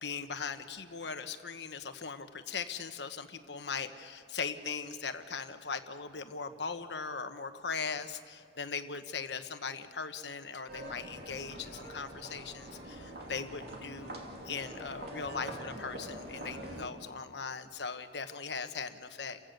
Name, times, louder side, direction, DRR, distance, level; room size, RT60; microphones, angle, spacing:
voice 1, 0.0-14.2 14.4-19.4, left 5 dB, 75° left, 9 dB, 1.2 m, -39 dB
sound 1, 10.7-16.9, right 1 dB, 65° right, 2.7 m, -44 dB
29.5 x 16.0 x 6.7 m, 2.2 s
head